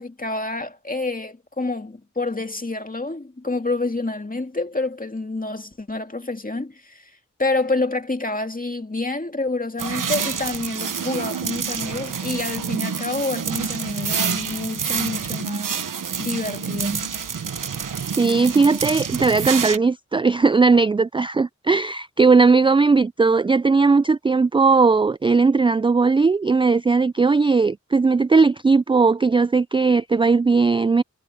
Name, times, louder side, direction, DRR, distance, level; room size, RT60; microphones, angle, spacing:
voice 1, 0.0-7.1 7.4-15.8 16.2-17.1, left 2 dB, 25° left, 2.3 m, -28 dB
sound 1, 9.8-19.8, right 6 dB, 85° right, 1.2 m, -27 dB
voice 2, 18.2-31.0, right 4 dB, 15° right, 0.3 m, -18 dB
cardioid pair, 50°, 31 cm